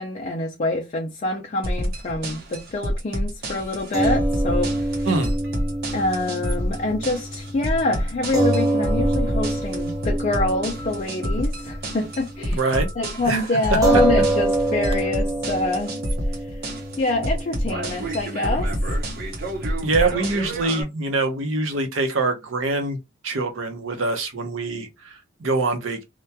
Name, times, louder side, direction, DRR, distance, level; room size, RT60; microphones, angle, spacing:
voice 1, 0.0-5.1 5.9-12.6 13.0-15.9 16.5-18.7, left 2 dB, 40° left, 0.4 m, -26 dB
sound 1, 1.6-20.8, equal, 50° right, 0.8 m, -28 dB
sound 2, 3.9-12.4 12.8-12.9 13.8-20.4, right 1 dB, 20° right, 0.7 m, -26 dB
voice 2, 5.1-5.4 12.5-12.9 13.3-13.4 19.8-23.0 23.2-26.0, right 3 dB, 90° right, 0.7 m, -24 dB
2.8 x 2.2 x 2.2 m
head